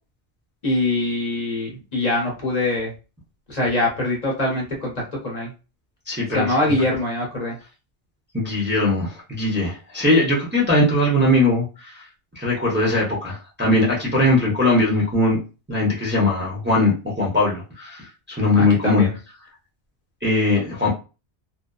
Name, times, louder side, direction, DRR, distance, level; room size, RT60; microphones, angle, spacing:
voice 1, 0.6-2.9 3.5-4.9 5.2-5.5 6.3-7.6 18.5-19.1, left 2 dB, 40° left, -2 dB, 0.8 m, -23 dB
voice 2, 6.1-6.5 8.3-11.9 12.4-15.4 15.7-19.1 20.2-20.9, left 2 dB, 10° right, -4 dB, 0.6 m, -20 dB
2.6 x 2.2 x 2.2 m, 0.31 s
omnidirectional pair, 1.1 m